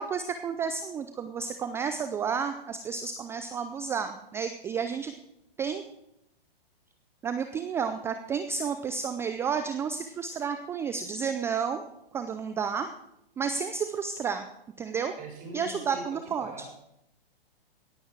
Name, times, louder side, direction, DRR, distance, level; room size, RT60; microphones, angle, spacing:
voice 1, 0.0-5.1 5.6-5.8 7.2-11.8 12.1-12.9 13.4-14.5 14.8-15.1 15.5-16.5, right 6 dB, 10° right, 8 dB, 0.4 m, -31 dB
voice 2, 15.2-16.7, right 1 dB, 30° right, 0 dB, 5.8 m, -42 dB
17.5 x 8.0 x 4.7 m, 0.81 s
hypercardioid pair, 125°, 30 cm